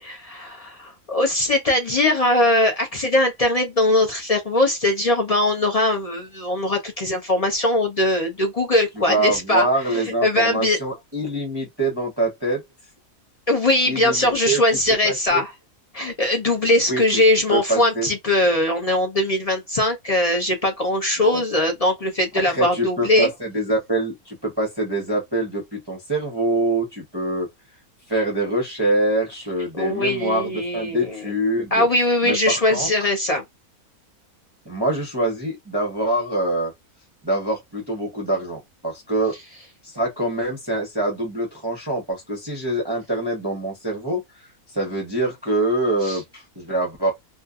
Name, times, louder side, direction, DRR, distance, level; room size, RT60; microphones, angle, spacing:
voice 1, 0.0-9.7 9.9-10.8 13.5-15.5 15.9-23.3 29.8-31.2 31.7-33.4 46.0-46.2, left 1 dB, 45° left, 0.5 m, -21 dB
voice 2, 9.1-12.6 13.9-14.6 14.9-15.4 16.9-17.2 17.5-18.1 21.2-21.4 22.3-27.5 28.1-31.8 32.2-33.1 34.6-36.7 37.2-39.3 39.8-44.2 44.7-47.1, right 1 dB, 20° right, 0.7 m, -25 dB
2.5 x 2.4 x 2.3 m
omnidirectional pair, 1.5 m